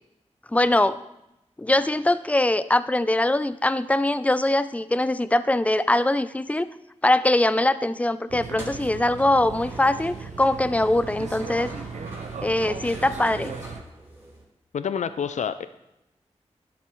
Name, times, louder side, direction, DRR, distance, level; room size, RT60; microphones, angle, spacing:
voice 1, 0.5-1.0 1.6-6.7 7.0-11.7 12.4-13.6, left 1 dB, 10° left, 14 dB, 0.4 m, -22 dB
sound 1, 8.3-13.8, right 5 dB, 75° right, 0.6 m, -37 dB
sound 2, 8.4-14.4, right 1 dB, 15° right, 3.2 m, -43 dB
voice 2, 14.7-15.7, left 7 dB, 80° left, 12 dB, 0.4 m, -28 dB
11.0 x 7.3 x 3.1 m, 0.87 s
cardioid pair, 50°, 12 cm